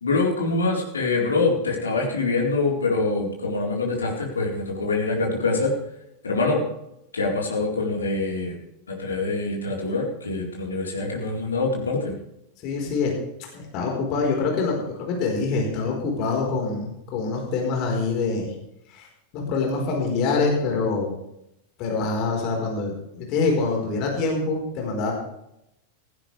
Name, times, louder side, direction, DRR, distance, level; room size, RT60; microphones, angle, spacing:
voice 1, 0.0-5.7 6.2-6.6 7.1-8.6 8.9-12.1, left 3 dB, 70° left, -1 dB, 4.2 m, -24 dB
voice 2, 12.6-13.1 13.5-18.5 18.9-19.0 19.3-21.1 21.8-25.1, left 4 dB, 40° left, 0 dB, 4.5 m, -25 dB
17.0 x 15.5 x 3.4 m, 0.81 s
figure-of-eight pair, 90°, 0 cm